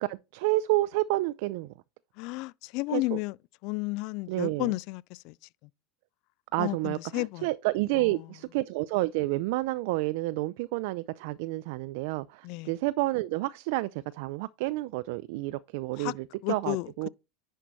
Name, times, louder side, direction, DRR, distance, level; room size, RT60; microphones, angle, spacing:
voice 1, 0.0-1.7 2.9-3.2 4.3-4.7 6.5-17.1, right 19 dB, 65° right, 0.4 m, -30 dB
voice 2, 2.2-3.4 3.6-5.3 6.6-7.5 8.0-8.1 12.4-12.7 16.0-16.1 16.4-16.9, left 23 dB, 60° left, 0.3 m, -32 dB
10.0 x 4.4 x 4.0 m
hypercardioid pair, 95°, 0 cm